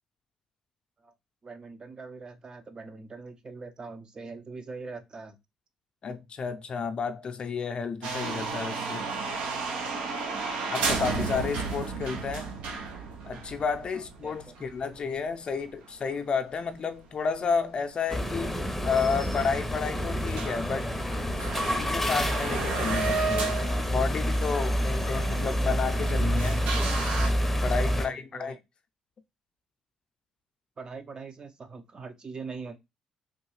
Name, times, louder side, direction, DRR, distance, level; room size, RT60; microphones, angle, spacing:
voice 1, 1.4-5.4 13.9-14.5 27.9-28.6 30.8-32.8, right 4 dB, 40° right, 0.6 m, -42 dB
voice 2, 6.0-9.1 10.7-12.5 13.2-20.9 21.4-26.6 27.6-28.6, left 5 dB, 50° left, 0.5 m, -31 dB
sound 1, 8.0-16.2 16.5-16.6 17.1-17.2 18.2-18.3 18.5-18.6 19.0-19.1 19.5-19.8 20.1-20.2 20.4-27.3, right 4 dB, 75° right, 0.6 m, -33 dB
sound 2, 18.1-28.1, equal, 10° left, 0.7 m, -28 dB
3.5 x 2.3 x 3.1 m
supercardioid pair, 60°, 2 cm